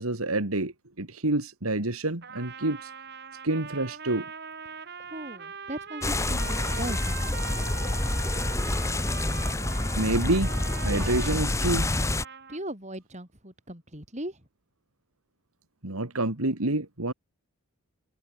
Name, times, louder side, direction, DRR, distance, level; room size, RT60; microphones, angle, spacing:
voice 1, 0.0-2.9 3.4-4.3 10.0-10.6 10.8-11.9 15.8-17.1, right 2 dB, 75° right, 2.6 m, -28 dB
Trumpet, 2.2-12.6, right 6 dB, 50° right, 2.4 m, -41 dB
voice 2, 5.1-7.5 12.5-14.4, right 1 dB, 30° right, 8.0 m, -38 dB
sound 1, 6.0-12.3, left 2 dB, 15° left, 0.7 m, -28 dB
head